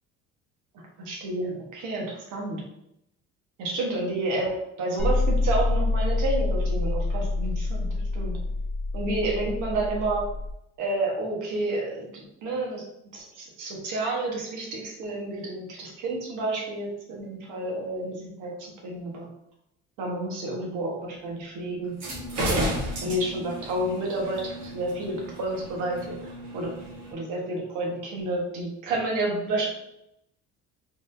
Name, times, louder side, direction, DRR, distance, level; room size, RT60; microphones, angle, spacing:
voice 1, 0.7-2.6 3.6-8.4 8.9-10.2 10.8-12.8 13.1-19.3 20.0-21.9 22.5-22.7 23.0-26.7 27.1-29.7, right 2 dB, 90° right, -1 dB, 1.4 m, -30 dB
sound 1, 5.0-10.5, left 2 dB, ahead, 1.0 m, -26 dB
sound 2, 21.9-27.1, equal, 60° right, 1.4 m, -33 dB
4.1 x 3.6 x 2.7 m, 0.81 s
cardioid pair, 150°, 30 cm